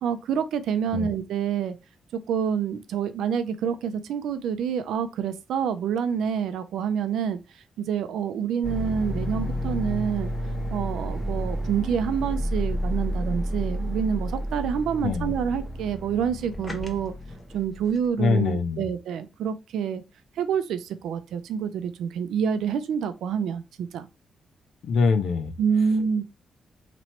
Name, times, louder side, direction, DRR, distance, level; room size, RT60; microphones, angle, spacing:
voice 1, 0.0-1.8 2.1-7.4 7.8-10.3 10.7-17.1 17.5-20.0 20.4-24.1 25.6-26.2, right 7 dB, 90° right, 0.4 m, -27 dB
sound 1, 8.6-18.1, equal, 20° left, 0.9 m, -30 dB
voice 2, 18.2-18.8 24.8-25.5, left 5 dB, 75° left, 0.6 m, -23 dB
3.0 x 2.9 x 4.2 m
cardioid pair, 100°, 0 cm